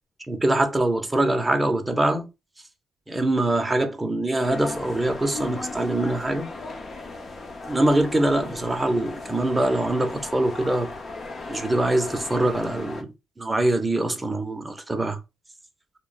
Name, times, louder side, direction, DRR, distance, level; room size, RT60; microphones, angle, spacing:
voice 1, 0.3-2.3 3.1-6.5 7.7-10.9 11.5-13.1 13.4-15.2, right 1 dB, 15° right, 0.5 m, -23 dB
sound 1, 4.4-13.0, left 3 dB, 45° left, 0.6 m, -36 dB
2.3 x 2.0 x 3.8 m
cardioid pair, 90°, 0 cm